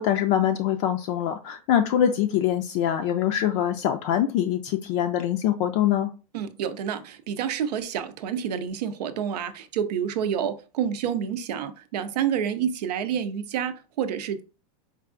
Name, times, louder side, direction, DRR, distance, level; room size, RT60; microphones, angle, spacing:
voice 1, 0.0-6.1, left 10 dB, 55° left, 0.4 m, -24 dB
voice 2, 6.3-14.4, right 8 dB, 90° right, 0.5 m, -28 dB
4.6 x 2.4 x 2.5 m
supercardioid pair, 135°, 20 cm